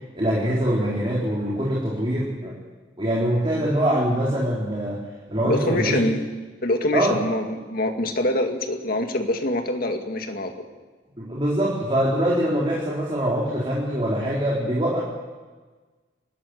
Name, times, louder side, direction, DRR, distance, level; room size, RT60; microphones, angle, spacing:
voice 1, 0.1-2.5 3.0-5.0 5.3-6.1 6.9-7.2 11.2-15.0, right 1 dB, 30° right, -5 dB, 4.0 m, -23 dB
voice 2, 5.4-6.2 6.6-10.6, left 1 dB, 55° left, 5 dB, 2.2 m, -25 dB
24.0 x 13.5 x 9.8 m, 1.3 s
head